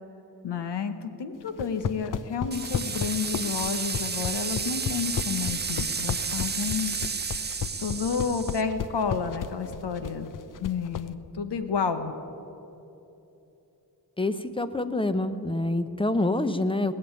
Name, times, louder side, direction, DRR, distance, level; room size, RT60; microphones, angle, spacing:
voice 1, 0.4-7.0 7.4-10.3 10.6-12.1, left 6 dB, 75° left, 9 dB, 1.1 m, -30 dB
sound 1, 1.5-11.1, left 8 dB, 50° left, 0.6 m, -32 dB
sound 2, 2.5-8.6, right 5 dB, 25° right, 0.5 m, -31 dB
voice 2, 14.2-16.9, left 2 dB, 15° left, 11 dB, 0.7 m, -26 dB
19.0 x 7.0 x 9.0 m, 3.0 s
cardioid pair, 75°, 42 cm